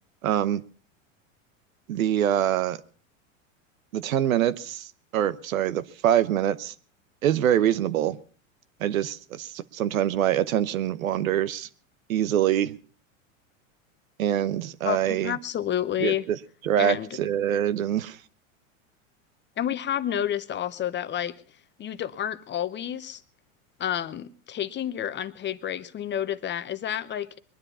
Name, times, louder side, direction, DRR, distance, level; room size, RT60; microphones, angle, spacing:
voice 1, 0.2-0.6 1.9-2.8 3.9-6.7 7.2-8.2 8.8-11.7 12.1-12.8 14.2-15.4 16.0-16.4 16.6-18.2, right 11 dB, 90° right, 0.9 m, -25 dB
voice 2, 14.8-16.2 16.8-17.1 19.6-21.3 21.8-23.2 23.8-27.4, left 10 dB, 30° left, 0.9 m, -30 dB
22.5 x 10.0 x 5.5 m
hypercardioid pair, 105°, 40 cm